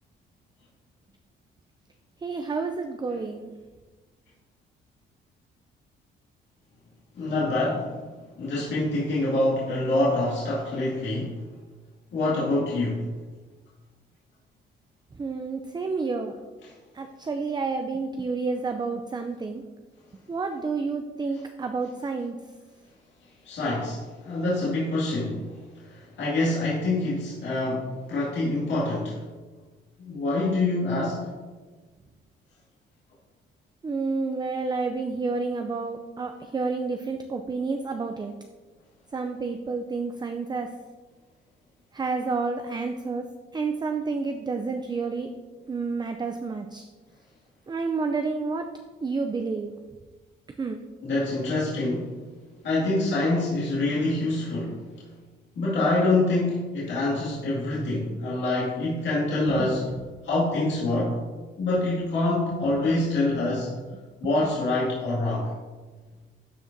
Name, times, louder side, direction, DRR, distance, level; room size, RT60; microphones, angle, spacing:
voice 1, 2.2-3.5 15.2-16.3 16.9-19.6 20.3-22.3 33.8-38.3 39.1-40.7 41.9-43.2 43.5-45.3 45.7-46.9 47.7-48.7 49.0-49.7 50.6-50.8 59.6-59.7 62.8-62.9, right 4 dB, 20° right, 5 dB, 0.5 m, -29 dB
voice 2, 7.1-8.0 8.4-11.4 12.1-13.1 16.6-16.7 23.4-29.2 30.0-31.3 51.0-52.1 52.6-54.8 55.6-59.9 60.2-61.2 61.6-63.7 64.2-65.5, left 2 dB, 65° left, -8 dB, 2.2 m, -26 dB
12.0 x 4.8 x 2.7 m, 1.3 s
cardioid pair, 90°, 20 cm